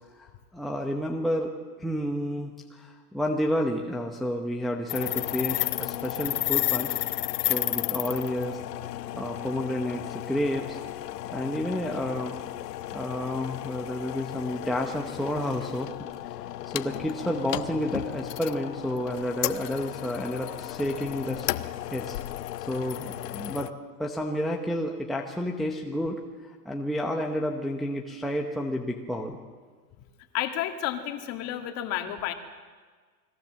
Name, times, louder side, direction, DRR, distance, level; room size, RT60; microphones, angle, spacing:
voice 1, 0.2-1.5 1.8-7.0 7.5-8.6 9.1-10.8 11.3-12.4 12.9-15.9 16.7-21.5 21.9-22.2 22.7-23.7 24.0-29.4, left 1 dB, ahead, 0 dB, 0.9 m, -30 dB
sound 1, 4.9-23.7, left 15 dB, 75° left, 1.2 m, -33 dB
voice 2, 30.3-32.3, left 12 dB, 30° left, 6 dB, 2.2 m, -31 dB
29.5 x 21.5 x 7.6 m, 1.5 s
supercardioid pair, 165°, 48 cm